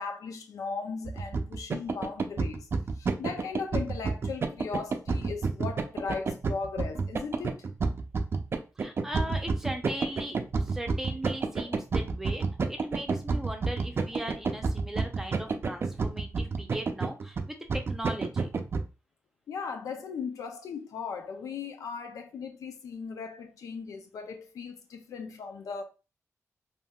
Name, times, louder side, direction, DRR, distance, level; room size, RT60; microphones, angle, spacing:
voice 1, 0.0-2.7 3.0-7.7 11.6-11.8 19.5-25.8, left 5 dB, 90° left, 0.5 m, -37 dB
sound 1, 1.1-18.8, right 4 dB, 45° right, 0.4 m, -29 dB
voice 2, 8.8-18.5, right 1 dB, 5° right, 0.6 m, -38 dB
3.5 x 2.7 x 2.2 m
wide cardioid pair, 110°, 6 cm